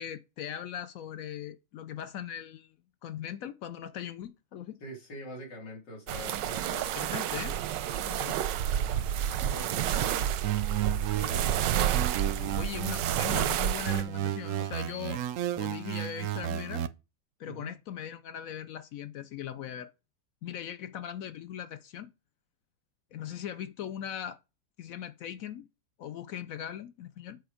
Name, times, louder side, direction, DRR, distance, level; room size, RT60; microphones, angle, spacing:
voice 1, 0.0-2.8 3.0-4.8 6.7-7.6 8.1-8.4 8.7-8.8 12.6-15.2 15.5-16.9 17.4-19.9 20.4-22.1 23.1-24.4 24.8-25.7 26.0-27.4, left 9 dB, 70° left, 0.8 m, -39 dB
voice 2, 4.8-7.4 7.8-10.5 11.2-12.0 12.2-12.6 17.5-17.7, equal, 85° left, 3.7 m, -45 dB
sound 1, 6.1-14.0, right 10 dB, 90° right, 1.3 m, -30 dB
sound 2, 10.4-13.5 13.9-16.9, right 11 dB, 70° right, 0.7 m, -32 dB
7.9 x 4.9 x 4.9 m
omnidirectional pair, 1.9 m